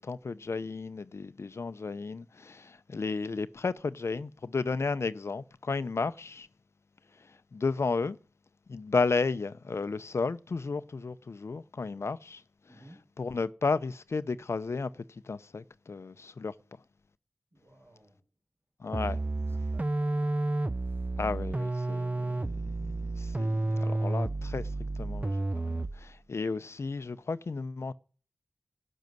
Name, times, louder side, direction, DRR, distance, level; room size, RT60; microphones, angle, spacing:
voice 1, 0.0-6.5 7.1-8.2 8.7-12.8 13.2-16.5 18.8-19.2 21.2-27.9, left 4 dB, 65° left, 0.6 m, -33 dB
voice 2, 17.5-18.2 19.2-20.4 20.8-21.1, right 1 dB, 60° right, 5.5 m, -57 dB
sound 1, 18.9-26.1, right 2 dB, 30° right, 0.5 m, -31 dB
12.0 x 6.3 x 9.3 m
cardioid pair, 50°, 5 cm